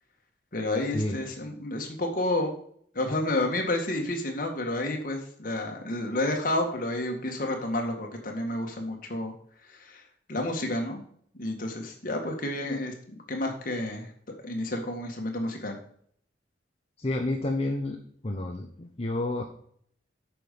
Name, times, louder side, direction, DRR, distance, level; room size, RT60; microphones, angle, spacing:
voice 1, 0.5-2.5 2.9-9.3 9.8-10.0 10.3-11.0 11.3-14.1 14.4-15.8, left 1 dB, 50° left, 2 dB, 1.8 m, -30 dB
voice 2, 17.0-18.0 18.2-19.4, left 2 dB, 35° left, 3 dB, 0.9 m, -29 dB
8.9 x 6.1 x 5.3 m, 0.63 s
head